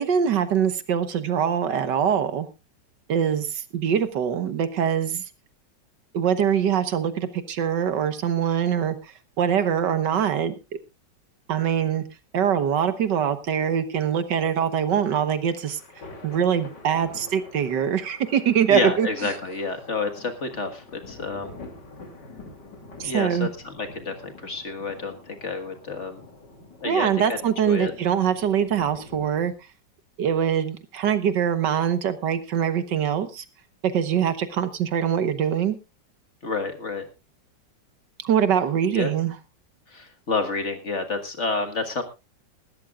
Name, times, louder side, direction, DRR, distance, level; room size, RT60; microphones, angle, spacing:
voice 1, 0.0-2.5 3.1-5.2 6.1-9.0 9.4-10.5 11.5-12.0 12.3-15.8 16.2-19.1 23.0-23.5 26.8-29.5 30.2-33.4 33.8-35.8 38.2-39.3, right 8 dB, 70° right, 12 dB, 1.7 m, -23 dB
sound 1, 12.7-29.5, left 3 dB, 70° left, 3.3 m, -46 dB
voice 2, 18.7-21.6 23.0-26.2 26.8-27.4 27.7-27.9 36.4-37.0 38.9-39.1 39.9-42.0, left 3 dB, 40° left, 6 dB, 1.8 m, -29 dB
20.0 x 13.5 x 2.4 m, 0.26 s
omnidirectional pair, 2.0 m